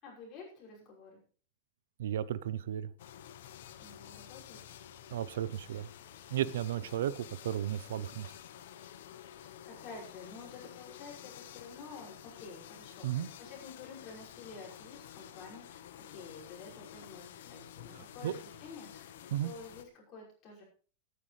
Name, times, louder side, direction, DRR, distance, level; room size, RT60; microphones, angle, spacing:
voice 1, 0.0-1.2 3.8-4.6 9.4-20.6, left 4 dB, 25° left, -5 dB, 5.7 m, -50 dB
voice 2, 2.0-2.9 5.1-5.9 6.3-8.3 13.0-13.3 18.0-18.3 19.3-19.5, right 11 dB, 80° right, 18 dB, 0.6 m, -34 dB
Bumblebees and bees, 3.0-19.8, left 10 dB, 65° left, 1.0 m, -51 dB
19.0 x 9.6 x 3.3 m, 0.40 s
supercardioid pair, 175°, 0 cm